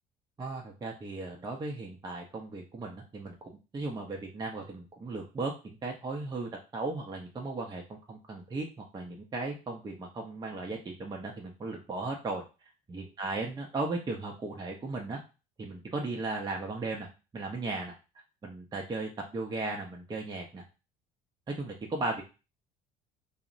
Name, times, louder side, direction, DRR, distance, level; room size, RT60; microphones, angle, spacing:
voice 1, 0.4-8.7 8.9-12.4 12.9-15.2 15.6-17.1 17.3-17.9 18.4-20.6 21.5-22.2, right 3 dB, 20° right, 0 dB, 0.5 m, -36 dB
2.7 x 2.0 x 2.5 m, 0.30 s
hypercardioid pair, 70°, 20 cm